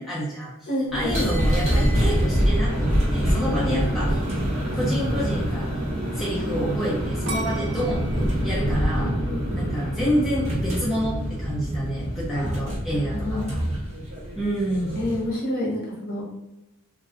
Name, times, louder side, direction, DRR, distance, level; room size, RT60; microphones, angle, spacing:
voice 1, 0.0-4.2 4.7-5.7 6.2-9.1 9.5-13.6 14.4-15.0, equal, ahead, -8 dB, 0.6 m, -28 dB
voice 2, 0.7-1.2 8.4-8.5 9.0-9.4 12.3-12.5 12.9-13.5 15.0-16.2, left 1 dB, 45° left, -3 dB, 0.9 m, -29 dB
sound 1, 0.9-15.3, equal, 30° right, 0.9 m, -25 dB
sound 2, 7.3-10.2 10.7-11.2, right 2 dB, 65° right, 0.5 m, -37 dB
2.6 x 2.3 x 3.5 m, 0.95 s
head